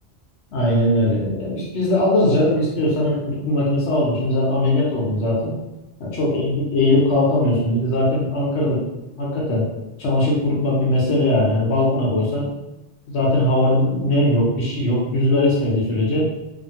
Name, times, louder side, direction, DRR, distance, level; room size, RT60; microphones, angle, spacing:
voice 1, 0.5-5.5 6.0-8.8 9.2-9.6 10.0-12.5 13.1-16.3, left 1 dB, 80° left, -5 dB, 1.1 m, -20 dB
2.8 x 2.5 x 2.7 m, 0.97 s
omnidirectional pair, 1.1 m